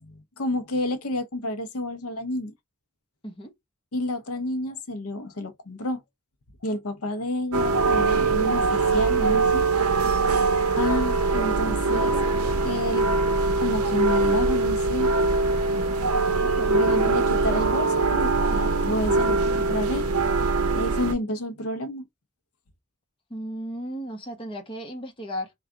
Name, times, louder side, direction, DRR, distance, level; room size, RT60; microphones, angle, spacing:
voice 1, 0.0-2.5 3.9-6.0 6.6-9.6 10.8-12.1 12.6-13.1 13.6-15.1 16.7-20.0 20.7-22.0, left 1 dB, 75° left, 0.7 m, -30 dB
sound 1, 7.5-21.1, right 3 dB, 75° right, 0.6 m, -22 dB
voice 2, 16.4-17.0 23.3-25.5, equal, 25° left, 0.9 m, -35 dB
3.5 x 2.4 x 3.7 m
head